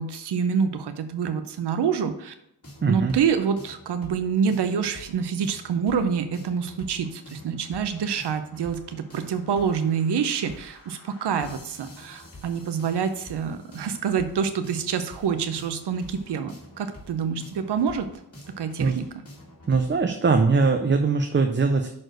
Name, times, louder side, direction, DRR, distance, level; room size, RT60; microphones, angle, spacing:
voice 1, 0.0-2.3 2.9-18.1 18.6-19.0, right 6 dB, 90° right, 9 dB, 0.6 m, -27 dB
sound 1, 2.6-20.0, left 1 dB, 35° left, 2.3 m, -47 dB
voice 2, 2.8-3.1 18.8-19.0 19.7-21.9, right 4 dB, 30° right, 5 dB, 0.5 m, -21 dB
6.3 x 4.3 x 6.4 m, 0.77 s
wide cardioid pair, 95°, 39 cm